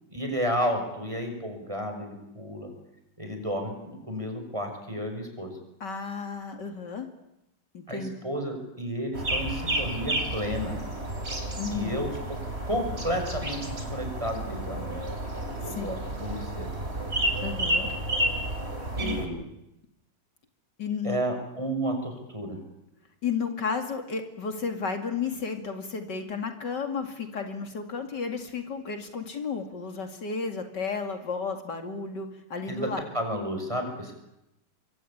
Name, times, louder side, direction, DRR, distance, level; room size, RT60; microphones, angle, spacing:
voice 1, 0.1-2.7 3.2-5.5 7.9-10.8 11.7-12.1 12.6-14.9 15.6-16.7 19.0-19.5 21.0-22.6 32.7-32.9 33.1-34.1, equal, 15° right, 4 dB, 6.1 m, -32 dB
voice 2, 5.8-7.1 7.7-8.1 11.6-12.0 15.6-15.9 17.4-17.9 19.0-19.2 20.8-21.2 23.2-33.1, left 5 dB, 70° left, 6 dB, 3.1 m, -33 dB
sound 1, 9.1-19.3, right 1 dB, 35° right, 4.0 m, -31 dB
25.5 x 23.5 x 8.7 m, 0.88 s
omnidirectional pair, 1.9 m